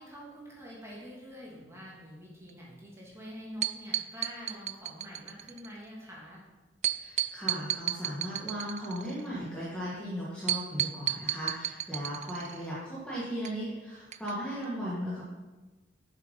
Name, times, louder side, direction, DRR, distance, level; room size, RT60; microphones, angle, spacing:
voice 1, 0.0-6.4, equal, 15° right, -5 dB, 2.7 m, -46 dB
sound 1, 3.6-5.7 6.8-9.3 10.5-12.7 13.4-13.5 14.1-14.3 14.6-14.7, right 11 dB, 40° right, 0.4 m, -32 dB
voice 2, 7.0-15.2, equal, 5° left, -8 dB, 1.8 m, -37 dB
7.6 x 7.4 x 5.5 m, 1.2 s
head